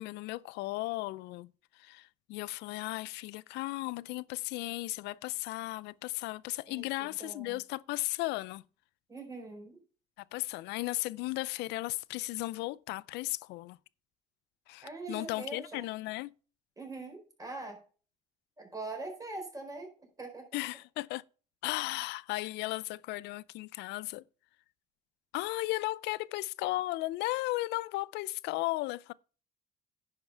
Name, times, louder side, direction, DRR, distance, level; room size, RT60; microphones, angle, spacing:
voice 1, 0.0-1.5 1.8-8.6 10.3-13.8 14.7-16.3 20.5-21.2 21.6-24.2 25.3-29.1, left 19 dB, 85° left, 0.5 m, -35 dB
voice 2, 6.7-7.6 9.1-9.8 14.8-15.9 16.8-17.8 18.6-19.9 20.2-20.5, right 3 dB, 20° right, 4.4 m, -42 dB
10.0 x 5.7 x 5.6 m
cardioid pair, 110°, 17 cm